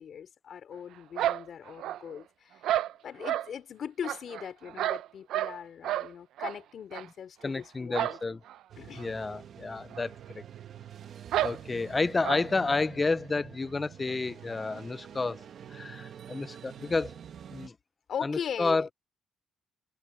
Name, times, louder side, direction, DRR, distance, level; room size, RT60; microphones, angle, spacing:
voice 1, 0.0-2.6 3.0-8.2 8.8-9.1 18.1-18.9, left 8 dB, 55° left, 3.4 m, -39 dB
sound 1, 1.2-2.2 2.6-3.5 4.0-5.6 5.8-6.1 6.4-6.6 6.9-7.0 7.9-8.2 8.5-8.6 9.0-9.1 9.9-10.0 10.3-10.4 11.3-11.6 12.2-12.4, right 13 dB, 85° right, 0.7 m, -30 dB
voice 2, 7.4-8.4 9.0-10.4 11.4-15.4 15.7-17.1 17.5-17.7 18.2-18.9, left 3 dB, 20° left, 0.3 m, -30 dB
sound 2, 8.7-17.7, right 9 dB, 55° right, 1.3 m, -47 dB
cardioid pair, 135°, 0 cm